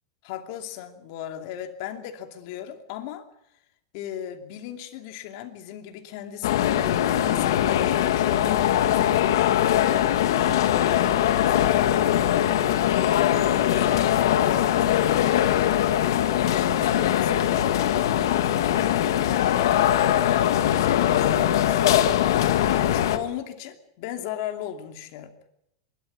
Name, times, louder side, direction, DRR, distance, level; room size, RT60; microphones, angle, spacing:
voice 1, 0.2-3.3 3.9-10.0 10.6-13.3 13.7-15.9 16.3-21.9 22.5-25.3, left 10 dB, 55° left, 2.6 m, -36 dB
sound 1, 6.4-23.2, left 11 dB, 80° left, 1.5 m, -21 dB
23.0 x 12.5 x 9.5 m
supercardioid pair, 155°, 2 cm